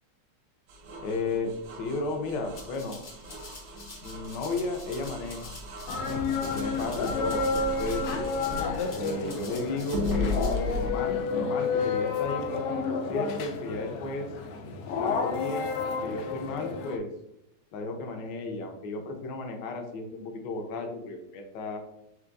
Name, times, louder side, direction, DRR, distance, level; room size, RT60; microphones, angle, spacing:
sound 1, 0.7-9.5 9.9-10.9, left 2 dB, 70° right, 1.2 m, -36 dB
voice 1, 1.0-1.5 1.8-3.0 4.0-5.4 6.4-8.2 8.9-14.3 14.9-15.7 16.0-17.1 17.7-21.8, left 3 dB, 65° left, 3 dB, 1.2 m, -34 dB
Rattle (instrument), 2.5-10.5, left 2 dB, 50° left, 0.7 m, -47 dB
sound 2, 5.9-17.0, left 4 dB, 90° left, 0.9 m, -30 dB
4.5 x 3.7 x 2.5 m, 0.80 s
omnidirectional pair, 2.4 m